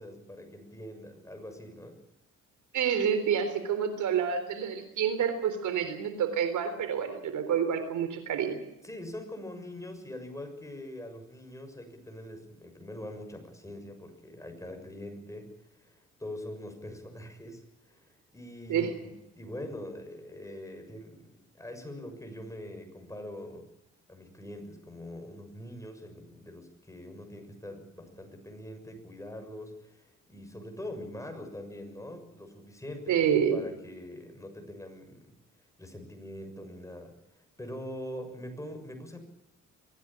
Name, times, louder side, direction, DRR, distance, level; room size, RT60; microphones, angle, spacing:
voice 1, 0.0-2.0 8.8-23.7 24.1-35.3 35.8-39.3, left 1 dB, 10° left, 5 dB, 6.7 m, -43 dB
voice 2, 2.7-8.6 18.7-19.0 33.1-33.6, right 8 dB, 75° right, 10 dB, 3.9 m, -28 dB
24.0 x 16.5 x 9.0 m, 0.86 s
cardioid pair, 90°, 30 cm